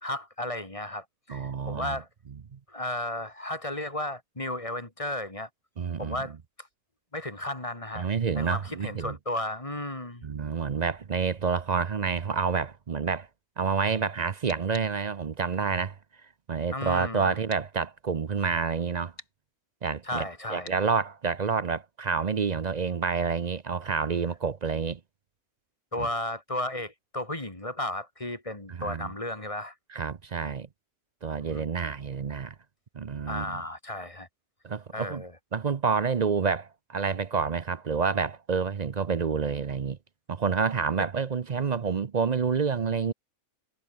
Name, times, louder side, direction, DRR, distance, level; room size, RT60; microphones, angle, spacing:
voice 1, 0.0-2.1 2.7-5.5 6.0-6.7 7.1-8.1 8.3-10.3 16.7-17.4 20.0-20.7 25.9-29.7 31.5-31.7 33.3-34.3 34.9-35.3, left 1 dB, 20° left, 2.6 m, -34 dB
voice 2, 1.3-2.0 2.5-2.6 5.8-6.2 7.9-9.1 10.2-13.3 13.6-16.0 16.5-19.1 19.8-25.0 26.0-26.1 28.7-29.1 29.9-30.7 31.2-32.5 32.9-33.6 34.6-35.2 35.5-40.0 40.3-43.1, right 5 dB, 45° right, 0.5 m, -28 dB
sound 1, 14.5-14.9 17.5-17.7 19.2-19.3 20.6-20.8, left 3 dB, 75° left, 5.1 m, -45 dB
omnidirectional pair, 1.6 m